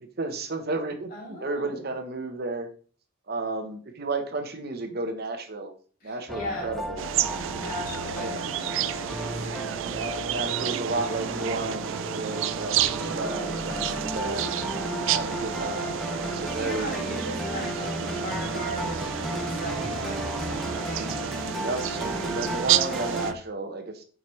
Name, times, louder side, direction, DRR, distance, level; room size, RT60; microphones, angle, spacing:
voice 1, 0.2-2.7 3.3-5.7 6.0-7.0 8.2-8.4 9.8-14.4 15.1-17.2 21.6-24.0, right 2 dB, 50° right, 6 dB, 1.0 m, -33 dB
voice 2, 1.1-1.8 6.0-6.7 7.5-9.8 16.5-21.2, left 1 dB, 45° left, -5 dB, 3.5 m, -39 dB
sound 1, 6.3-23.3, equal, ahead, 0.6 m, -34 dB
sound 2, 7.0-23.3, right 10 dB, 70° right, 0.4 m, -30 dB
7.1 x 5.1 x 3.2 m, 0.41 s
head